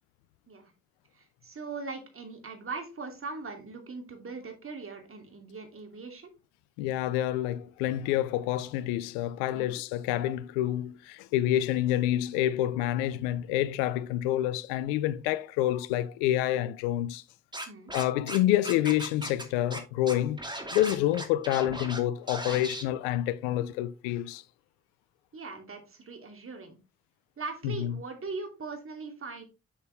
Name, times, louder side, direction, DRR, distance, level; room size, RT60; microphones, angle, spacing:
voice 1, 1.1-6.3 9.5-9.7 17.7-17.9 25.3-26.8 27.4-29.4, right 4 dB, 45° right, 2.7 m, -40 dB
voice 2, 6.8-17.2 17.9-20.4 20.7-24.4 27.6-27.9, left 13 dB, 85° left, 0.5 m, -28 dB
Scratching (performance technique), 17.5-18.4 18.6-19.4 19.7-19.8 20.1-22.0 22.3-22.8, right 1 dB, 15° right, 2.4 m, -37 dB
7.0 x 6.6 x 3.4 m
hypercardioid pair, 45°, 31 cm